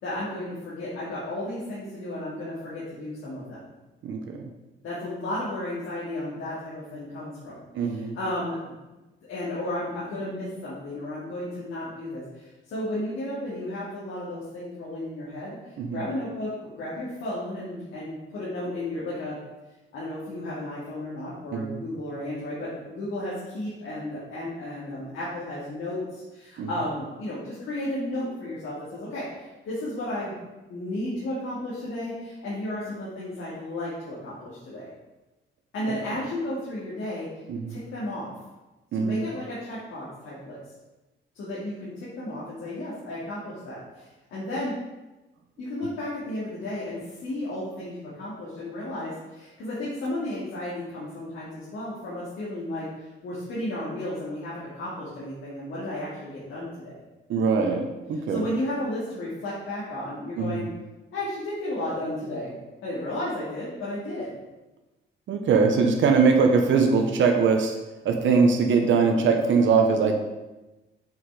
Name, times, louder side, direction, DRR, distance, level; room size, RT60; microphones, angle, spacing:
voice 1, 0.0-3.6 4.8-7.6 8.1-19.4 19.9-30.3 30.7-34.9 35.7-37.3 37.7-38.3 38.9-40.6 41.3-44.7 45.6-57.0 58.3-60.7 61.1-62.5 62.8-64.4, left 1 dB, 80° left, -8 dB, 2.5 m, -33 dB
voice 2, 4.0-4.5 7.7-8.2 15.8-16.0 21.5-21.8 26.6-26.7 37.5-37.8 38.9-39.2 57.3-58.4 60.4-60.7 65.3-67.8 68.0-70.2, right 5 dB, 70° right, 4 dB, 1.0 m, -22 dB
7.3 x 6.4 x 4.9 m, 1.1 s
cardioid pair, 145°, 20 cm